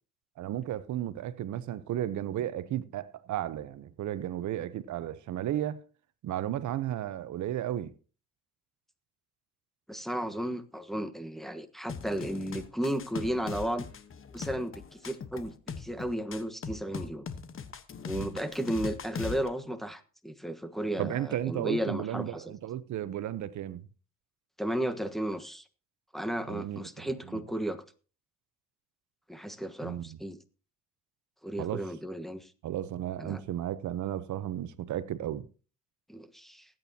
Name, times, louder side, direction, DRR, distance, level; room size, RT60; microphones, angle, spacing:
voice 1, 0.4-5.8 6.2-7.9 18.1-18.4 21.0-23.8 26.5-27.4 29.8-30.2 31.6-31.8 32.6-35.5, right 12 dB, 70° right, 0.9 m, -34 dB
voice 2, 9.9-13.9 14.3-17.2 18.1-22.4 24.6-25.6 26.1-27.8 29.3-30.4 31.4-32.5 33.2-33.4 36.1-36.7, right 1 dB, ahead, 1.3 m, -34 dB
sound 1, 11.9-19.5, left 6 dB, 45° left, 1.2 m, -40 dB
20.0 x 9.0 x 2.8 m
cardioid pair, 90°, 30 cm